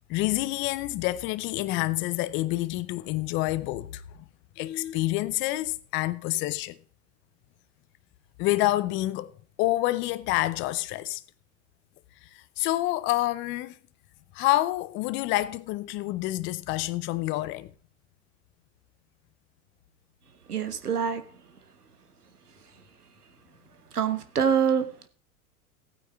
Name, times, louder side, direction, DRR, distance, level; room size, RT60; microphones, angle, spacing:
voice 1, 0.1-4.0 4.6-6.8 8.4-9.3 9.6-11.2 12.3-13.8 14.3-17.7, left 17 dB, 25° left, 0.5 m, -28 dB
voice 2, 20.5-21.2 23.9-24.8, right 7 dB, 85° right, 1.4 m, -25 dB
15.5 x 9.1 x 3.5 m
figure-of-eight pair, 95°, 45 cm